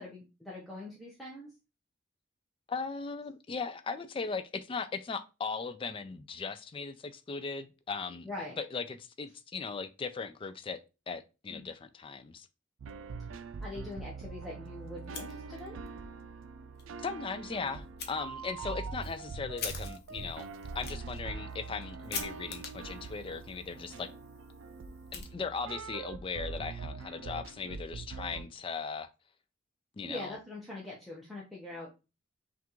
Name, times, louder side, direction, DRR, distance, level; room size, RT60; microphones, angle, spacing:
voice 1, 0.0-1.5 8.2-8.6 11.5-11.7 13.6-15.8 30.0-31.9, left 2 dB, ahead, 0.8 m, -43 dB
voice 2, 2.7-8.3 8.6-10.8 11.1-12.5 17.0-20.5 20.7-24.1 25.1-29.1 30.0-30.4, left 5 dB, 25° left, 0.3 m, -38 dB
sound 1, 12.8-28.4, right 4 dB, 85° right, 0.4 m, -43 dB
Fire, 15.0-15.9 16.2-16.3 16.8-16.9 18.0-18.1 18.7-25.8, left 5 dB, 55° left, 0.8 m, -45 dB
5.7 x 2.5 x 3.0 m
head